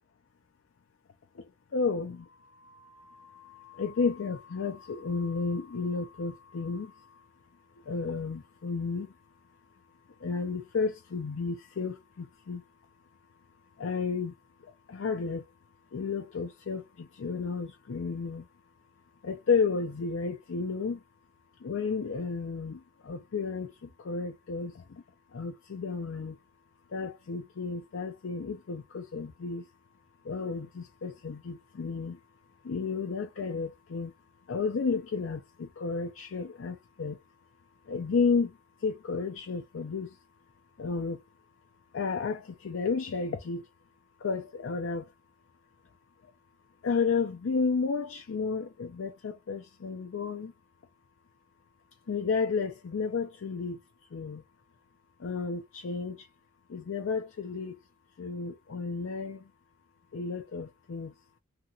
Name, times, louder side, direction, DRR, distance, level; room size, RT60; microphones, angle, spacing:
voice 1, 1.4-2.3 2.6-7.2 7.9-9.1 10.2-12.6 13.8-14.3 14.9-15.4 15.9-18.4 19.2-21.0 21.6-25.0 25.3-26.4 26.9-29.7 30.2-32.2 32.6-34.1 34.5-37.2 37.9-40.2 40.8-41.2 41.9-43.7 44.2-45.1 46.8-50.5 52.1-53.8 54.1-54.4 55.2-56.3 56.7-57.8 58.2-59.5 60.1-61.1, left 5 dB, 85° left, 0.5 m, -32 dB
2.8 x 2.7 x 2.4 m
head